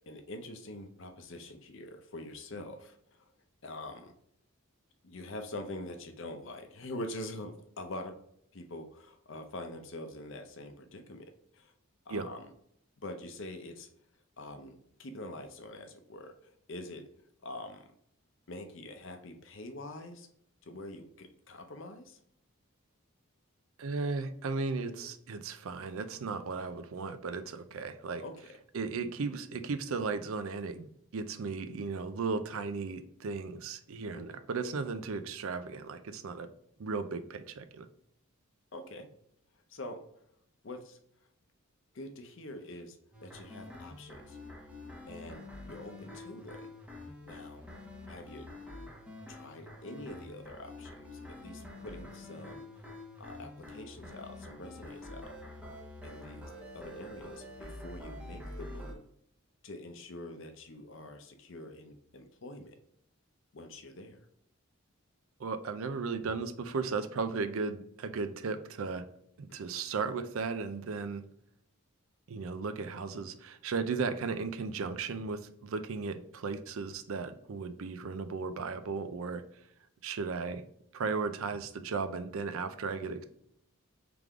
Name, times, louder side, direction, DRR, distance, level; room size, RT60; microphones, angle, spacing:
voice 1, 0.1-3.3 3.6-4.1 5.0-8.1 8.5-11.3 11.5-11.7 12.1-12.5 13.0-13.9 14.4-17.1 17.4-17.9 18.5-20.3 20.6-22.2 24.9-25.1 28.2-28.5 34.1-34.3 38.7-39.1 39.7-40.0 40.6-41.0 41.9-44.4 45.1-46.7 47.0-47.7 48.1-48.5 49.3-52.9 53.2-55.4 56.0-59.0 59.6-62.8 63.5-64.3 69.5-69.6, left 1 dB, 60° left, 6 dB, 0.6 m, -45 dB
voice 2, 23.8-28.2 28.7-36.5 36.8-37.9 65.4-69.1 69.4-71.2 72.3-79.4 80.0-80.6 80.9-83.2, right 4 dB, 70° right, 10 dB, 0.4 m, -35 dB
sound 1, 43.1-58.9, left 1 dB, 5° right, 0.8 m, -47 dB
3.6 x 3.4 x 3.5 m, 0.71 s
head